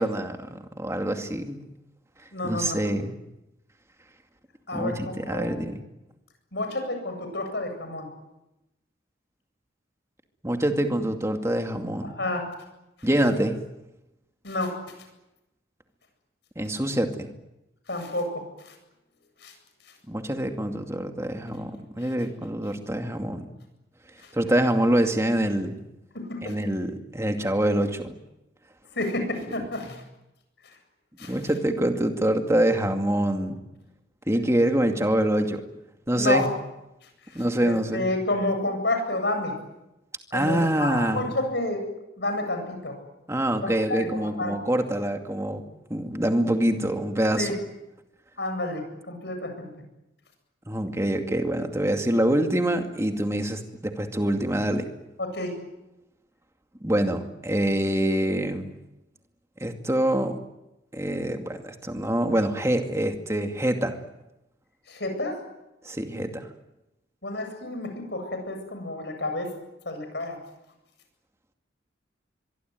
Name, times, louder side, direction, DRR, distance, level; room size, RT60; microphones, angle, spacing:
voice 1, 0.0-1.6 2.4-3.1 4.7-5.8 10.4-12.2 13.0-13.6 16.6-17.3 20.1-23.5 24.3-25.8 26.4-28.1 29.6-29.7 31.3-33.6 34.3-35.6 36.1-36.4 37.3-38.1 40.3-41.3 43.3-45.6 45.9-47.5 50.7-54.9 56.8-58.7 59.6-60.4 60.9-64.0 65.8-66.5, right 1 dB, 15° right, 5 dB, 2.3 m, -25 dB
voice 2, 2.3-2.8 4.7-5.5 6.5-8.1 12.2-12.5 14.4-14.7 17.9-18.7 19.4-19.5 22.0-22.1 24.2-24.3 26.1-26.5 28.9-30.0 30.6-30.7 31.2-31.4 36.1-36.4 37.3-39.6 40.3-41.9 42.2-42.9 43.6-44.6 47.4-47.6 48.4-49.7 55.2-55.5 64.9-65.4 67.2-69.5 69.8-70.4, left 2 dB, 60° left, 6 dB, 8.0 m, -30 dB
23.5 x 23.5 x 9.4 m, 0.93 s
head